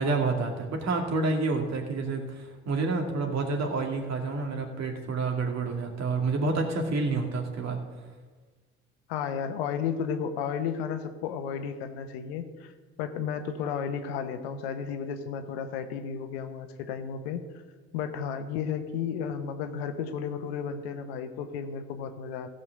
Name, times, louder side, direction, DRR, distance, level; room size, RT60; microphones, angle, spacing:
voice 1, 0.0-7.8, right 3 dB, 60° right, 2 dB, 2.3 m, -28 dB
voice 2, 9.1-12.7 13.0-17.5 17.9-22.5, left 7 dB, 85° left, 8 dB, 1.0 m, -33 dB
15.0 x 5.5 x 6.5 m, 1.4 s
hypercardioid pair, 60°, 31 cm